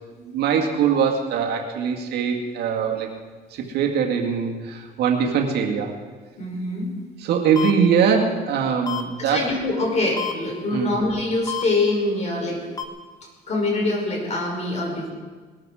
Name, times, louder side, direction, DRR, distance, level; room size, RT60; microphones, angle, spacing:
voice 1, 0.3-3.1 3.5-6.0 7.2-9.4 10.7-10.9, right 6 dB, 75° right, 1 dB, 2.0 m, -22 dB
voice 2, 6.4-6.9 9.2-12.6 13.5-15.1, left 2 dB, 40° left, 0 dB, 5.7 m, -24 dB
sound 1, 7.6-7.7 8.9-9.0 10.2-10.3 11.5-11.6 12.8-12.9, left 9 dB, 20° left, 1.4 m, -28 dB
20.5 x 13.5 x 4.9 m, 1.4 s
cardioid pair, 110°, 17 cm